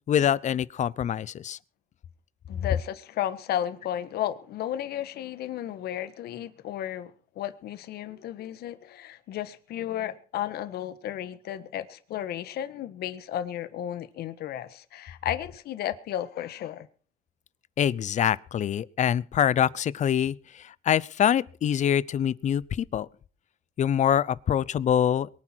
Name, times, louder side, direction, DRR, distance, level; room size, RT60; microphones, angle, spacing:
voice 1, 0.1-1.6 17.8-23.1 23.8-25.3, left 9 dB, 45° left, 0.7 m, -25 dB
voice 2, 2.5-16.9, left 11 dB, 70° left, 1.5 m, -33 dB
23.0 x 10.0 x 4.6 m
cardioid pair, 110°, 17 cm